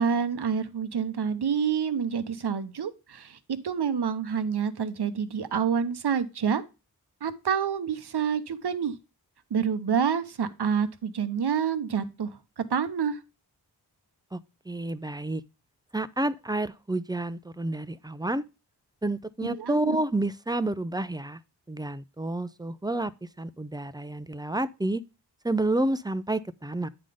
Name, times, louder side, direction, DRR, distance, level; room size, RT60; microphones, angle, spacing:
voice 1, 0.0-6.6 7.2-8.9 9.5-13.2 19.6-20.0, right 7 dB, 70° right, 0.9 m, -28 dB
voice 2, 14.7-15.4 15.9-18.4 19.0-21.4 21.7-23.1 23.4-25.0 25.4-26.9, right 2 dB, 10° right, 0.5 m, -29 dB
8.9 x 3.9 x 4.9 m
cardioid pair, 50°, 42 cm